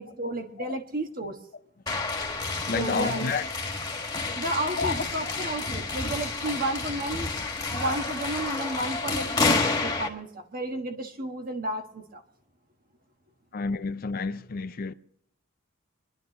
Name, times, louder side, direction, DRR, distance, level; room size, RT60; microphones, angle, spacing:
voice 1, 0.0-1.4 2.7-3.3 4.4-7.3 7.7-12.2, right 1 dB, 45° right, 1.3 m, -32 dB
sound 1, 1.9-10.1, left 3 dB, 20° left, 1.6 m, -30 dB
voice 2, 2.7-3.4 4.8-5.0 13.5-14.9, left 4 dB, 45° left, 0.5 m, -29 dB
27.5 x 11.0 x 3.0 m
head